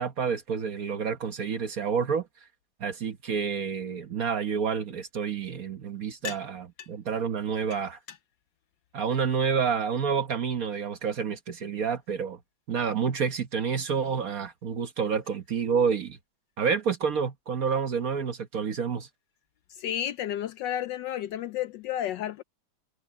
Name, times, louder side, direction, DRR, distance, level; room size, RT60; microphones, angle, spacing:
voice 1, 0.0-2.3 2.8-8.0 8.9-12.4 12.7-16.2 16.6-19.1, right 6 dB, 50° right, 1.3 m, -29 dB
voice 2, 19.7-22.4, left 11 dB, 75° left, 1.1 m, -32 dB
omnidirectional pair, 2.3 m